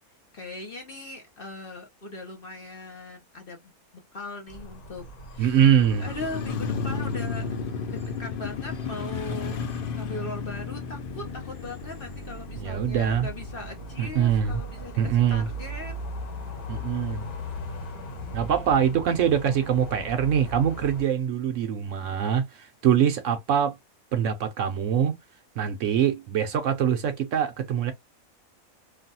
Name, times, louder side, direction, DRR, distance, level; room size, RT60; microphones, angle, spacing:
voice 1, 0.3-3.7 4.1-5.0 5.3-5.6 6.0-7.5 7.9-9.6 10.0-15.9, left 2 dB, 45° left, 0.8 m, -39 dB
sound 1, 4.5-21.0, equal, 85° left, 1.4 m, -40 dB
voice 2, 5.4-6.1 12.6-13.3 14.0-14.6 15.0-15.5 16.7-17.3 18.3-23.8 24.1-25.1 25.6-27.9, right 8 dB, 65° right, 0.9 m, -23 dB
Motorcycle, 5.5-15.7 16.0-16.1, left 6 dB, 70° left, 0.5 m, -34 dB
3.2 x 2.3 x 2.7 m
omnidirectional pair, 1.5 m